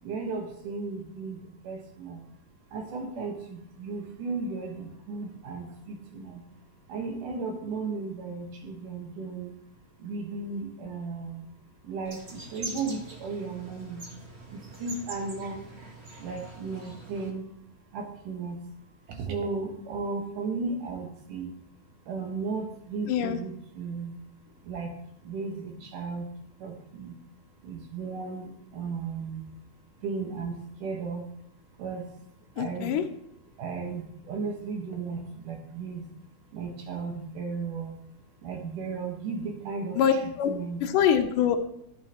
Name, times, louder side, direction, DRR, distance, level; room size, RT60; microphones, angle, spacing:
voice 1, 0.0-2.3 2.7-6.4 6.9-9.5 10.0-11.5 11.8-14.0 14.5-15.6 16.2-17.4 17.9-18.6 19.1-21.5 22.1-24.2 24.6-26.3 26.6-27.1 27.6-29.5 30.0-31.3 31.8-32.1 32.6-32.9 33.6-36.1 36.5-38.0 38.4-40.8, right 4 dB, 70° right, 3 dB, 2.9 m, -35 dB
sound 1, 12.0-17.3, right 2 dB, 35° right, 0.9 m, -43 dB
voice 2, 23.1-23.4 32.6-33.1 40.0-40.5 40.8-41.6, left 8 dB, 75° left, 4 dB, 2.3 m, -24 dB
14.5 x 8.5 x 3.0 m, 0.75 s
omnidirectional pair, 3.9 m